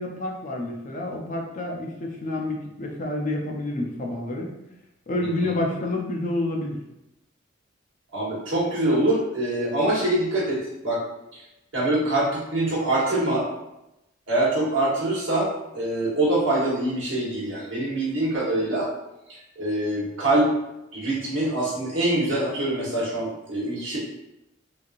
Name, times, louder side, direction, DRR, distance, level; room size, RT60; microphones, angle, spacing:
voice 1, 0.0-4.5 5.1-6.8, left 1 dB, 40° left, 0 dB, 0.5 m, -28 dB
voice 2, 8.1-11.0 11.3-11.4 11.7-13.5 14.3-18.9 19.3-20.5 20.9-24.0, right 1 dB, 70° right, -6 dB, 1.2 m, -24 dB
3.1 x 2.7 x 2.5 m, 0.90 s
head